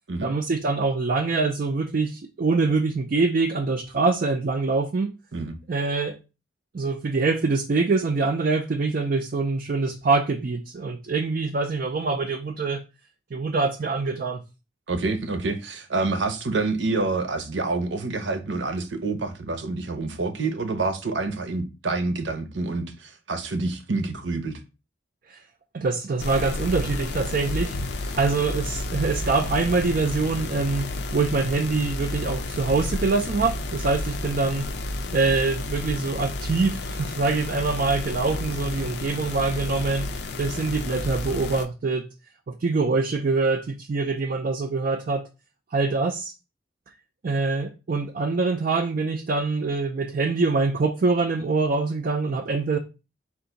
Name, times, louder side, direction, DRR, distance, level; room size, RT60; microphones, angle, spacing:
voice 1, 0.2-5.2 5.7-6.2 6.7-12.8 13.3-14.4 25.3-25.4 25.7-27.8 28.1-34.7 35.1-40.1 40.4-42.0 42.5-45.3 45.7-46.3 47.2-52.8, right 3 dB, 50° right, 0.4 m, -24 dB
voice 2, 14.9-24.6, right 3 dB, 80° right, 0.8 m, -27 dB
sound 1, 26.2-41.7, left 2 dB, 65° left, 0.4 m, -31 dB
4.6 x 2.6 x 3.9 m
head